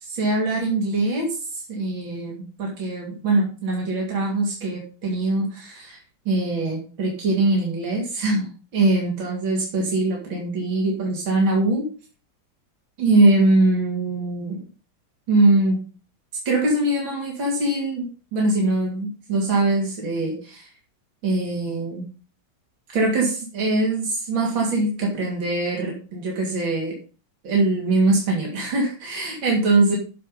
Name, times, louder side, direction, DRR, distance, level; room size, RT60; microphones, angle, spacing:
voice 1, 0.0-6.0 6.3-11.9 13.0-14.6 15.3-15.8 16.5-20.7 21.2-22.0 22.9-27.0 27.4-30.0, right 2 dB, 75° right, -2 dB, 3.7 m, -22 dB
14.0 x 5.2 x 5.5 m, 0.35 s
omnidirectional pair, 2.2 m